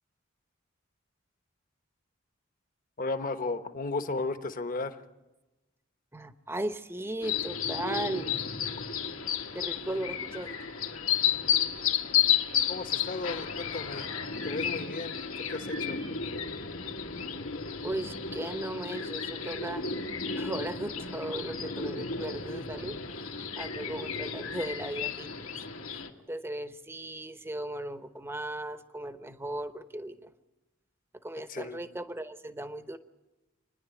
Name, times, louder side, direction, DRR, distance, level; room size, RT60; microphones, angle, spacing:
voice 1, 3.0-5.0 12.7-14.1 14.4-16.0 31.4-31.8, left 3 dB, 40° left, 9 dB, 1.2 m, -35 dB
voice 2, 6.1-8.4 9.5-10.6 17.8-19.8 20.4-25.5 25.9-30.3 31.2-33.0, right 1 dB, 10° right, 10 dB, 0.9 m, -37 dB
sound 1, 7.2-26.1, left 7 dB, 85° left, 1.9 m, -32 dB
28.0 x 10.5 x 9.1 m, 1.1 s
head